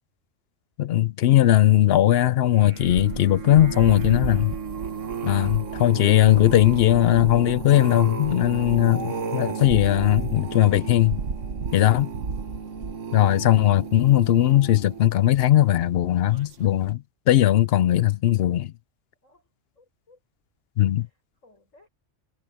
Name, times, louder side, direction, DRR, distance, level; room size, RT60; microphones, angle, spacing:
voice 1, 0.8-4.5 5.2-11.2 11.7-12.1 13.1-18.7 20.8-21.1, left 13 dB, 65° left, 0.7 m, -19 dB
sound 1, 2.4-15.8 16.3-16.6 16.9-17.0, right 5 dB, 75° right, 1.7 m, -32 dB
voice 2, 19.2-20.2 21.0-21.9, left 2 dB, 90° left, 7.6 m, -60 dB
omnidirectional pair, 1.3 m